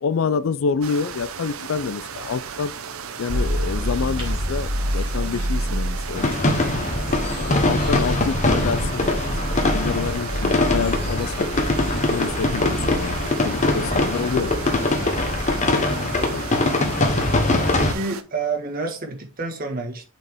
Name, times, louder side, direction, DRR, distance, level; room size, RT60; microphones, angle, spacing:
voice 1, 0.0-2.7 3.2-6.9 7.4-9.1 9.5-11.5 11.8-13.2 13.4-14.5 16.3-16.4, left 5 dB, 70° left, 0.4 m, -27 dB
sound 1, 0.8-18.2, right 7 dB, 90° right, 0.7 m, -35 dB
sound 2, 3.3-15.5, equal, 25° right, 4.2 m, -28 dB
sound 3, 6.1-17.9, left 2 dB, 35° left, 1.0 m, -22 dB
voice 2, 15.6-16.4 17.7-20.1, right 3 dB, 45° right, 1.6 m, -30 dB
7.8 x 4.4 x 3.5 m
head